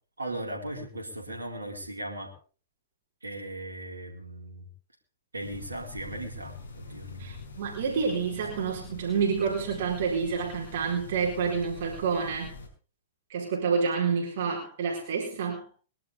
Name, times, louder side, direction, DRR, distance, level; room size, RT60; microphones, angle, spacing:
voice 1, 0.2-2.3 3.2-4.7 5.3-7.3, right 1 dB, 90° right, 0 dB, 4.2 m, -38 dB
sound 1, 5.4-12.7, left 3 dB, 70° left, 5.9 m, -44 dB
voice 2, 7.2-12.5 13.3-15.7, right 5 dB, 60° right, -1 dB, 4.3 m, -28 dB
23.5 x 11.5 x 3.7 m, 0.38 s
hypercardioid pair, 115°, 0 cm